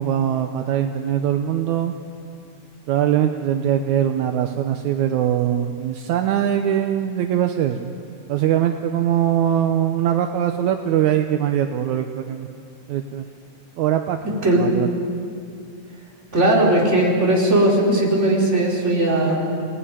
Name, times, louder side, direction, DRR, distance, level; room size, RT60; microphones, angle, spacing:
voice 1, 0.0-1.9 2.9-7.9 8.3-12.5 12.9-13.3 13.8-14.9, right 10 dB, 75° right, 6 dB, 2.2 m, -22 dB
voice 2, 16.3-19.5, right 1 dB, 20° right, -3 dB, 4.8 m, -18 dB
26.5 x 18.5 x 10.0 m, 2.4 s
omnidirectional pair, 3.5 m